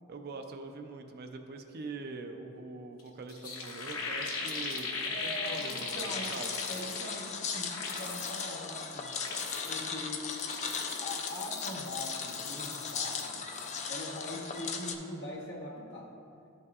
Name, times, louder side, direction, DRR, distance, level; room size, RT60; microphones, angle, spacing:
voice 1, 0.1-6.5, right 3 dB, 45° right, 5 dB, 0.5 m, -43 dB
sound 1, 3.0-3.1 3.3-7.3 7.6-8.5 8.9-9.9 10.3-13.3 13.5-13.9, left 4 dB, 85° left, 0.9 m, -39 dB
voice 2, 5.0-6.3 6.7-9.1 9.7-10.2 11.0-13.5 13.9-16.1, left 1 dB, 55° left, -3 dB, 1.2 m, -42 dB
sound 2, 5.9-15.0, left 5 dB, 35° left, 0.4 m, -37 dB
12.0 x 5.4 x 2.4 m, 2.6 s
head